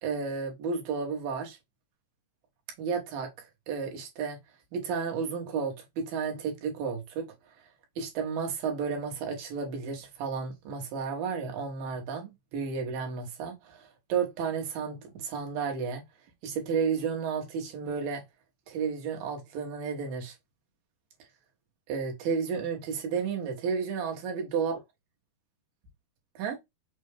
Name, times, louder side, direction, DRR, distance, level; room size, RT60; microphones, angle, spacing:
voice 1, 0.0-1.6 2.8-4.4 4.7-7.3 8.0-16.0 16.4-18.2 18.7-20.3 21.9-24.8 26.4-26.6, right 6 dB, 85° right, 2.8 m, -32 dB
5.9 x 2.2 x 3.3 m
omnidirectional pair, 3.9 m